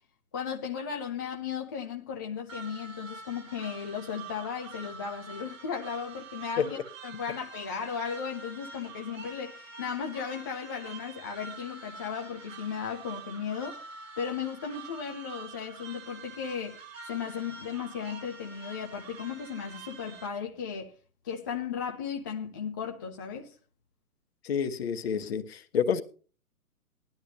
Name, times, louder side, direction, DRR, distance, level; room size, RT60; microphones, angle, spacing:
voice 1, 0.3-6.8 7.0-13.8 14.2-20.9 21.2-23.5, left 7 dB, 15° left, 0.5 m, -36 dB
sound 1, 2.5-20.3, right 4 dB, 60° right, 3.8 m, -46 dB
voice 2, 24.4-26.0, left 7 dB, 45° left, 1.3 m, -28 dB
18.5 x 12.0 x 2.8 m
figure-of-eight pair, 130°, 45 cm